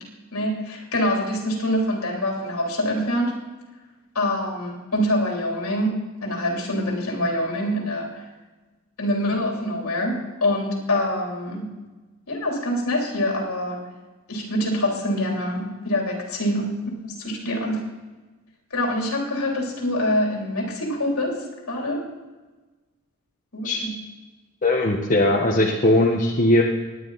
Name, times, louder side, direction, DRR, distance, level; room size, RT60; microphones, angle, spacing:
voice 1, 0.3-3.3 4.1-5.9 6.2-8.2 9.0-11.6 12.3-13.8 14.3-16.8 17.0-17.8 18.7-22.0 23.5-24.0, left 1 dB, 75° left, -1 dB, 3.4 m, -25 dB
voice 2, 24.6-26.6, left 1 dB, 35° left, -2 dB, 1.2 m, -19 dB
19.5 x 9.8 x 4.1 m, 1.2 s
head